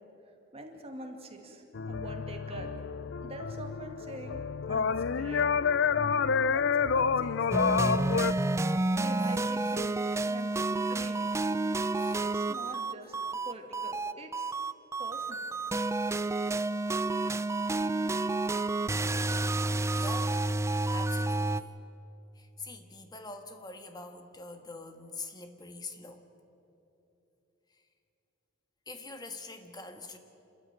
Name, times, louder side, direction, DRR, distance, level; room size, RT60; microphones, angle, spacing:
voice 1, 0.5-2.8 3.2-4.4 4.7-5.5 6.5-8.4 9.0-11.3 12.2-13.1 13.4-14.7 15.0-15.5, right 1 dB, 30° right, 3 dB, 2.3 m, -44 dB
sound 1, 1.7-8.3, left 6 dB, 60° left, 0.5 m, -29 dB
sound 2, 7.5-21.6, right 2 dB, 15° right, 0.4 m, -30 dB
voice 2, 12.0-12.3 12.6-13.2 19.9-20.5 20.9-21.7 22.3-26.3 27.7-27.8 28.9-30.2, left 3 dB, 20° left, 6 dB, 1.5 m, -45 dB
27.5 x 14.0 x 9.1 m, 3.0 s
head